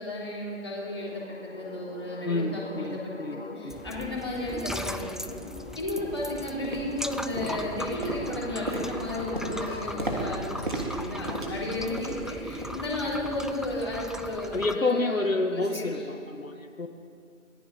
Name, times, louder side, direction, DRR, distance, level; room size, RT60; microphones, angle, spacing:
voice 1, 0.0-3.1 3.6-5.4 5.8-16.1, left 1 dB, 20° left, -5 dB, 3.5 m, -34 dB
sound 1, 0.7-13.8, left 2 dB, 45° left, 1.4 m, -44 dB
voice 2, 2.2-4.1 14.5-16.9, left 2 dB, 60° left, 4 dB, 2.1 m, -29 dB
sound 2, 3.7-14.8, left 1 dB, ahead, 0.5 m, -39 dB
sound 3, 4.0-4.1 4.6-4.7 5.3-5.4 6.0-6.3 6.6-7.1 7.4-12.3 12.6-12.9 13.2-13.4 14.0-14.1, right 1 dB, 35° right, 3.5 m, -35 dB
28.0 x 19.5 x 7.4 m, 2.4 s
figure-of-eight pair, 180°, 44 cm